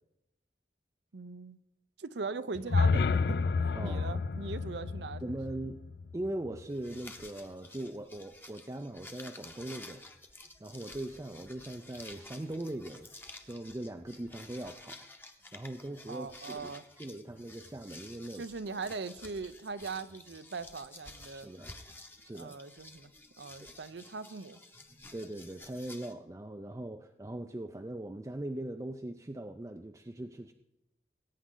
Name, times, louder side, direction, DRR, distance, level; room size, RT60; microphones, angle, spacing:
voice 1, 1.1-1.6 2.0-3.4 3.8-5.2 16.1-16.8 18.3-21.5 22.3-23.1 23.4-24.6, right 4 dB, 80° right, 13 dB, 0.6 m, -40 dB
sound 1, 2.5-6.6, left 4 dB, 65° left, 0.4 m, -30 dB
voice 2, 3.7-4.2 5.2-5.8 6.1-10.0 10.6-13.1 13.4-15.0 15.5-16.7 17.0-18.4 21.3-21.8 22.2-22.6 25.1-30.5, right 1 dB, 20° right, 5 dB, 0.4 m, -40 dB
sound 2, 6.7-26.1, left 2 dB, 10° left, 0.9 m, -52 dB
20.0 x 9.3 x 3.9 m, 0.87 s
head